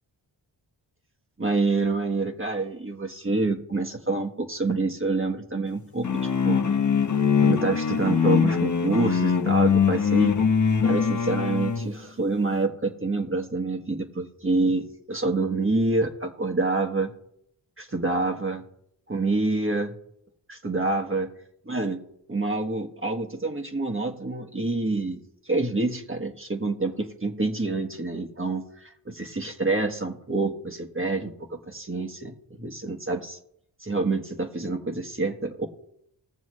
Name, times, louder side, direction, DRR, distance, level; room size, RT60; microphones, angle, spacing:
voice 1, 1.4-6.6 7.4-10.4 10.8-17.1 17.8-18.6 19.1-19.9 20.5-21.3 21.7-22.0 22.3-25.2 25.4-33.4 33.8-35.7, right 3 dB, 25° right, 3 dB, 1.4 m, -27 dB
sound 1, 6.0-11.9, left 6 dB, 40° left, 0.9 m, -22 dB
20.0 x 7.0 x 3.2 m, 0.73 s
cardioid pair, 55°, 47 cm